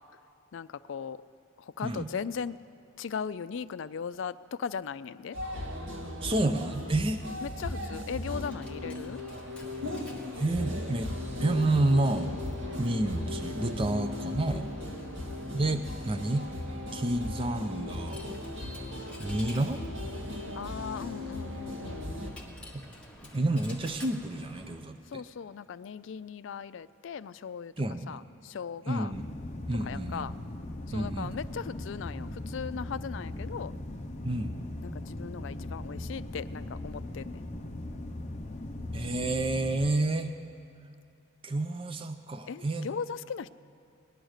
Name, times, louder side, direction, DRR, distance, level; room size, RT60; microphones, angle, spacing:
voice 1, 0.5-1.2 1.6-2.6 3.0-5.4 7.4-9.2 13.8-14.0 14.5-15.1 20.6-22.1 25.1-27.7 28.1-29.1 29.8-30.4 30.9-33.7 34.8-37.4 42.5-43.5, left 6 dB, 65° left, 15 dB, 0.4 m, -38 dB
sound 1, 5.3-22.3, left 1 dB, 65° right, 1.8 m, -37 dB
voice 2, 6.2-7.2 10.4-11.1 11.4-12.4 12.8-14.7 15.5-16.4 16.9-18.2 19.2-19.8 23.3-25.2 27.8-28.2 28.9-29.3 29.7-30.3 30.9-31.3 34.2-34.5 38.9-40.3 41.4-42.9, right 2 dB, 25° right, 6 dB, 0.5 m, -29 dB
Coin (dropping), 8.3-25.0, equal, 5° left, 1.3 m, -49 dB
sound 2, 29.1-39.9, left 1 dB, 35° left, 0.7 m, -39 dB
19.0 x 10.5 x 6.5 m, 2.7 s
head